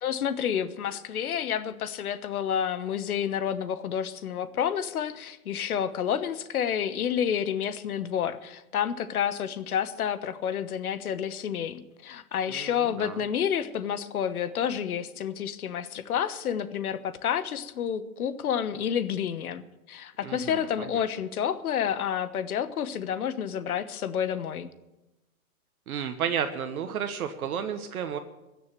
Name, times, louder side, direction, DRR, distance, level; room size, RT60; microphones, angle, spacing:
voice 1, 0.0-19.6 19.9-24.7, left 8 dB, 75° left, 13 dB, 1.3 m, -29 dB
voice 2, 12.5-13.2 20.2-21.0 25.9-28.2, right 8 dB, 75° right, 8 dB, 1.3 m, -32 dB
16.0 x 6.9 x 9.1 m, 0.99 s
hypercardioid pair, 130°, 43 cm